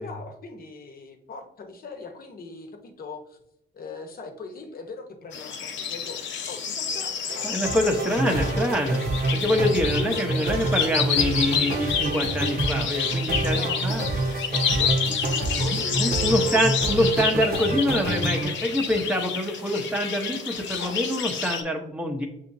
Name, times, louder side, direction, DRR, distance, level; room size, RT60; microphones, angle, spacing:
voice 1, 0.0-3.4 3.7-6.2 6.5-7.8 8.1-8.9 10.0-10.8 13.5-16.7 20.7-21.0, left 4 dB, 50° left, 4 dB, 1.0 m, -40 dB
sound 1, 5.3-21.6, left 7 dB, 70° left, 0.7 m, -29 dB
sound 2, 7.3-18.6, right 2 dB, 50° right, 0.9 m, -27 dB
voice 2, 7.4-9.0 9.4-14.0 15.6-22.3, equal, 5° right, 1 dB, 0.8 m, -25 dB
6.9 x 2.8 x 2.7 m, 0.83 s
cardioid pair, 90°, 20 cm